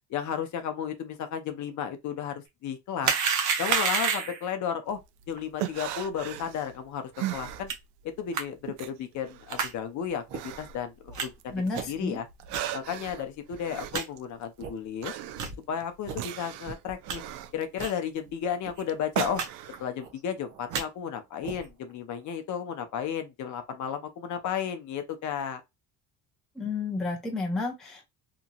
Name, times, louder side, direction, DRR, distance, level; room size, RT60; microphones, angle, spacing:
voice 1, 0.1-3.1 3.6-5.0 5.3-7.7 8.0-12.3 12.7-15.1 15.7-17.2 17.5-19.4 19.8-25.6, left 8 dB, 45° left, 0.6 m, -33 dB
sound 1, 3.0-4.5 7.7-7.8 8.3-8.4 9.5-9.7 10.3-10.4 11.1-11.3 11.7-12.0 12.5-12.6 13.2-13.3 13.5-13.6 13.9-14.0 14.6-14.7 15.3-15.5 16.0-16.2 16.6-17.2 17.8-18.0 18.3-18.4 18.6-18.8 19.3-19.5 19.7-20.1 20.5-20.8 21.4-21.7, right 6 dB, 45° right, 0.7 m, -29 dB
sound 2, 4.9-8.2 8.5-11.8 12.1-19.9, right 12 dB, 80° right, 0.5 m, -38 dB
voice 2, 11.5-12.2 26.6-28.1, left 3 dB, ahead, 0.4 m, -31 dB
2.9 x 2.6 x 2.5 m
cardioid pair, 170°, 41 cm